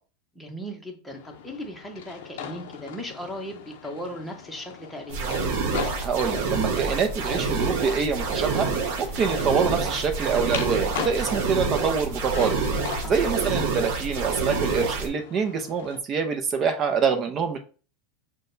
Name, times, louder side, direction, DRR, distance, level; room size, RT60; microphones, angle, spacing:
voice 1, 0.3-5.4 13.0-13.3, equal, ahead, 0 dB, 0.9 m, -37 dB
sound 1, 1.1-16.0, left 8 dB, 80° left, 0.6 m, -40 dB
sound 2, 5.1-15.1, right 4 dB, 70° right, 1.0 m, -27 dB
voice 2, 6.0-8.7 9.0-12.6 13.0-17.6, right 6 dB, 30° right, 6 dB, 0.6 m, -25 dB
6.1 x 2.2 x 2.7 m, 0.36 s
supercardioid pair, 145°, 0 cm